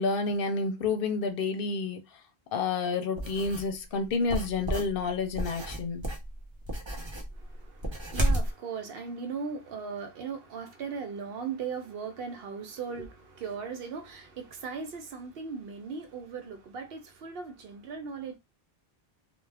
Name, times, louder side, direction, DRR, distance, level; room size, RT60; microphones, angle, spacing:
voice 1, 0.0-2.0 2.5-6.0, left 4 dB, 65° left, 0.7 m, -29 dB
sound 1, 3.2-3.7 4.3-8.5, right 1 dB, 35° right, 0.5 m, -32 dB
voice 2, 7.3-18.4, right 5 dB, 70° right, 0.8 m, -38 dB
2.3 x 2.1 x 3.2 m
omnidirectional pair, 1.0 m